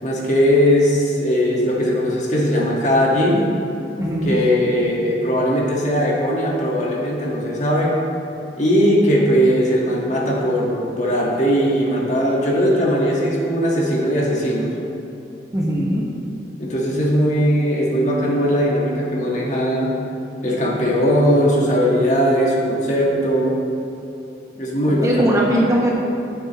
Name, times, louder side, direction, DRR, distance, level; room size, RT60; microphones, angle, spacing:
voice 1, 0.0-3.5 4.2-7.9 8.6-14.7 16.6-19.9 20.4-23.6 24.5-25.4, equal, 40° left, -3 dB, 1.6 m, -19 dB
voice 2, 4.0-4.4 15.5-16.0 24.9-25.9, equal, 20° right, -4 dB, 1.3 m, -19 dB
14.5 x 7.6 x 3.0 m, 2.9 s
head